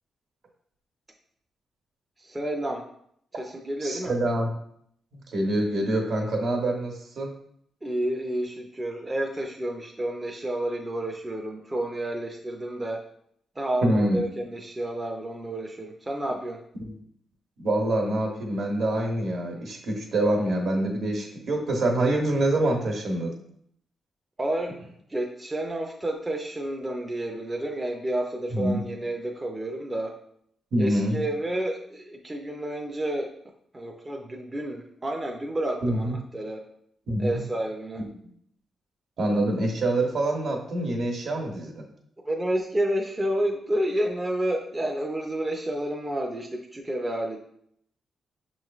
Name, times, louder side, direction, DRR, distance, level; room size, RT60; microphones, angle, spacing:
voice 1, 2.2-2.8 3.3-4.1 7.8-13.0 13.6-16.6 24.4-24.8 25.1-30.1 30.8-33.3 33.7-36.6 37.2-38.0 42.2-47.4, right 1 dB, 15° right, 1 dB, 0.4 m, -30 dB
voice 2, 3.8-4.5 5.1-7.3 13.8-14.2 16.8-16.9 17.6-23.3 28.5-28.8 30.7-31.2 35.8-36.2 37.1-37.4 39.2-41.9, right 1 dB, 60° right, 1 dB, 1.0 m, -25 dB
6.4 x 3.0 x 2.4 m, 0.69 s
wide cardioid pair, 155°, 0 cm